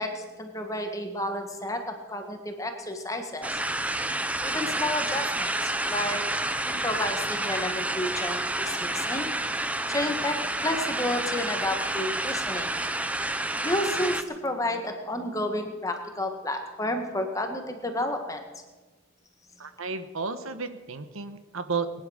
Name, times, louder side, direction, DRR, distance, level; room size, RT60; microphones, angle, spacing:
voice 1, 0.0-3.6 3.9-4.0 4.4-6.2 6.6-9.3 9.9-12.8 13.6-18.4, left 1 dB, 15° left, 5 dB, 1.7 m, -31 dB
sound 1, 3.4-14.2, right 1 dB, 5° right, 0.6 m, -29 dB
voice 2, 19.6-22.1, right 4 dB, 85° right, 10 dB, 1.2 m, -33 dB
21.0 x 10.5 x 6.6 m, 1.3 s
head